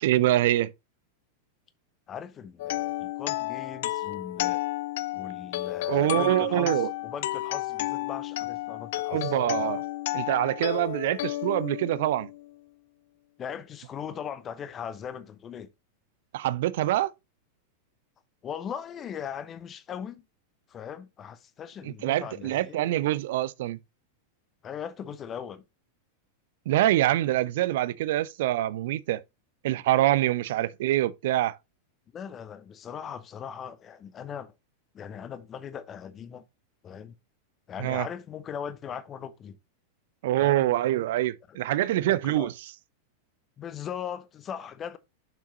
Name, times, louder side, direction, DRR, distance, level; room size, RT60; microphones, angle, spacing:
voice 1, 0.0-0.7 5.9-6.9 9.1-9.8 10.1-12.3 16.3-17.1 21.8-23.8 26.7-29.2 29.6-31.6 37.8-38.1 40.2-42.5, right 14 dB, 55° right, 0.4 m, -25 dB
voice 2, 2.1-4.6 5.1-9.3 13.4-15.7 18.4-20.2 20.7-22.8 24.6-25.6 32.1-34.5 34.9-36.4 36.8-37.1 37.7-39.6 40.4-40.7 42.0-42.5 43.6-45.0, left 8 dB, 25° left, 0.8 m, -39 dB
sound 1, 2.6-12.5, left 17 dB, 55° left, 0.3 m, -32 dB
6.9 x 5.7 x 2.9 m
figure-of-eight pair, 90°, 0 cm